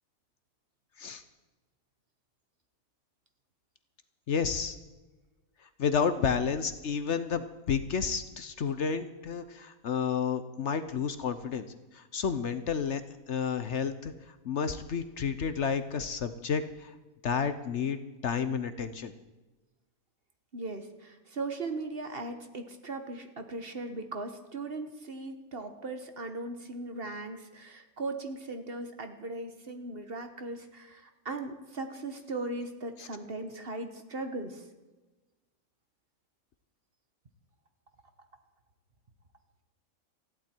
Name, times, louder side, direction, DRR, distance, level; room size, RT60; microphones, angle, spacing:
voice 1, 4.3-4.7 5.8-11.7 11.9-13.0 13.3-14.1 14.4-16.9 17.2-19.1 33.0-33.1, left 6 dB, 60° left, 11 dB, 1.0 m, -31 dB
voice 2, 20.5-34.6, right 2 dB, 45° right, 7 dB, 1.4 m, -38 dB
20.0 x 15.0 x 4.5 m, 1.2 s
omnidirectional pair, 1.5 m